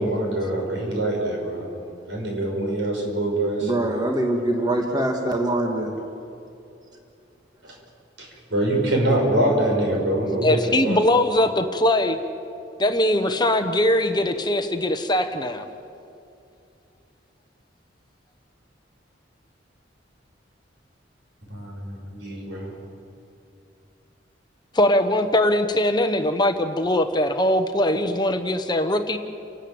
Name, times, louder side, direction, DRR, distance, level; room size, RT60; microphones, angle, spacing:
voice 1, 0.0-1.7 2.1-3.9 8.2-11.0 21.5-22.7, right 1 dB, 75° right, -1 dB, 6.4 m, -24 dB
voice 2, 3.6-5.9, right 1 dB, 20° right, 1 dB, 2.0 m, -23 dB
voice 3, 10.4-12.2 12.8-15.6 24.7-29.2, left 1 dB, 25° left, 7 dB, 1.0 m, -21 dB
29.5 x 13.0 x 8.8 m, 2.6 s
head